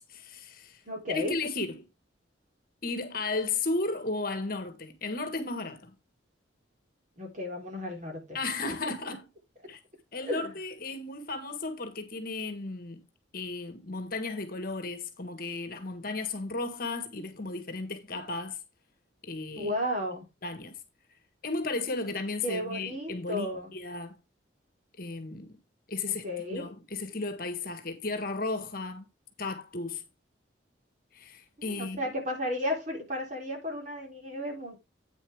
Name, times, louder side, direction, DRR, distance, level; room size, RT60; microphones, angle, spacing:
voice 1, 0.0-0.8 1.1-1.9 2.8-5.9 8.3-9.3 9.7-9.8 10.1-13.0 13.3-18.6 19.2-19.7 20.4-20.8 21.4-23.5 23.7-24.2 24.9-25.5 25.9-29.0 29.4-30.0 31.1-32.0, left 3 dB, 50° left, 1.5 m, -34 dB
voice 2, 0.9-1.3 7.2-8.4 8.8-9.2 10.2-10.6 19.6-20.2 22.4-23.7 26.0-26.7 31.6-34.8, left 1 dB, 40° right, 3.7 m, -34 dB
8.9 x 7.1 x 3.5 m
head